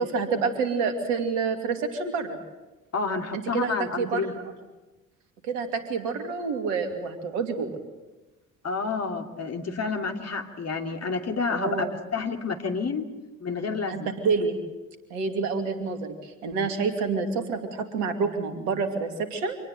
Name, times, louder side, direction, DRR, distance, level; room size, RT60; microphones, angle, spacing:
voice 1, 0.0-2.4 3.3-4.4 5.4-7.8 11.6-11.9 13.9-14.6 15.1-19.6, right 5 dB, 75° right, 6 dB, 2.8 m, -28 dB
voice 2, 2.9-4.3 8.6-11.9 12.1-13.1 13.4-14.1, left 4 dB, 40° left, 4 dB, 2.8 m, -29 dB
25.5 x 19.0 x 7.9 m, 1.1 s
figure-of-eight pair, 50°, 40 cm